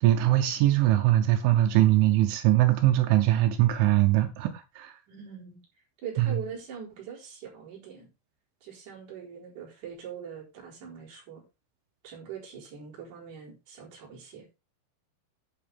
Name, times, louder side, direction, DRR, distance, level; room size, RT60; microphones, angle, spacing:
voice 1, 0.0-4.5 4.8-4.9 6.2-6.4, right 14 dB, 80° right, 3.5 m, -22 dB
voice 2, 5.1-5.6 6.0-8.1 8.6-11.4 12.0-14.5, right 7 dB, 45° right, 5.7 m, -42 dB
11.0 x 8.8 x 3.6 m
omnidirectional pair, 5.5 m